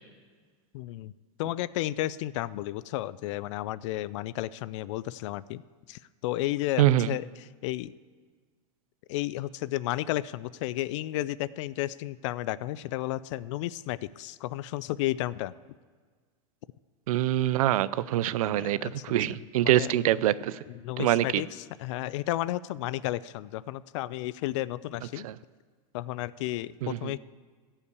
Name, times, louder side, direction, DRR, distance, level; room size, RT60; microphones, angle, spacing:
voice 1, 0.7-1.1 1.4-5.6 5.9-7.9 9.1-15.5 18.6-19.1 19.6-19.9 20.7-25.3 25.9-27.2, left 16 dB, 60° left, 19 dB, 0.4 m, -33 dB
voice 2, 6.8-7.1 17.1-20.6 21.0-21.4 25.2-25.3 26.8-27.1, right 13 dB, 80° right, 18 dB, 0.5 m, -25 dB
15.0 x 5.7 x 8.3 m, 1.5 s
supercardioid pair, 145°, 18 cm